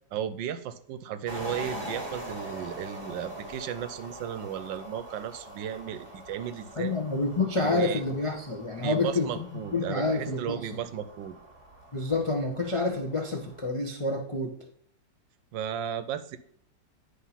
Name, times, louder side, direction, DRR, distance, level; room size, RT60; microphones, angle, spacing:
voice 1, 0.1-7.0 7.6-8.0 8.8-11.4 15.5-16.4, right 9 dB, 85° right, 12 dB, 1.3 m, -35 dB
sound 1, 1.3-13.7, equal, 15° right, 1.2 m, -43 dB
voice 2, 6.8-9.3 9.7-10.6 11.9-14.5, left 3 dB, 50° left, 1 dB, 0.3 m, -28 dB
9.5 x 3.5 x 5.6 m, 0.66 s
omnidirectional pair, 2.0 m